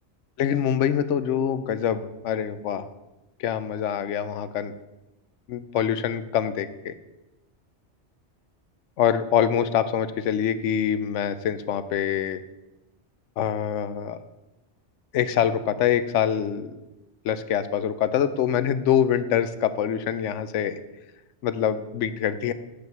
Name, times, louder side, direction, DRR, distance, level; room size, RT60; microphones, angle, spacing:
voice 1, 0.4-2.9 3.4-4.7 5.5-6.9 9.0-12.4 13.4-14.2 15.1-16.7 17.2-20.8 21.4-22.5, left 9 dB, 85° left, 13 dB, 0.9 m, -25 dB
7.8 x 5.0 x 6.7 m, 1.0 s
omnidirectional pair, 1.2 m